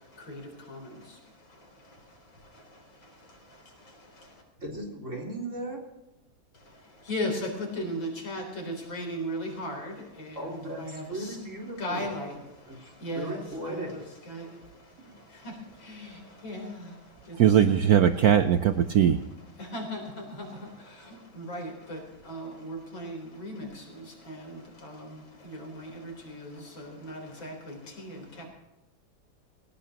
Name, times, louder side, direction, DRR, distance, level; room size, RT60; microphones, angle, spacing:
voice 1, 0.0-4.4 6.5-11.4 11.8-17.9 19.6-28.5, equal, 85° left, 4.6 m, -38 dB
voice 2, 4.6-5.8 10.3-12.2 12.7-12.8 13.1-14.0 15.1-15.2, right 1 dB, 40° right, 4.2 m, -37 dB
voice 3, 17.4-19.2, right 9 dB, 65° right, 1.0 m, -20 dB
19.0 x 17.5 x 2.9 m
omnidirectional pair, 2.1 m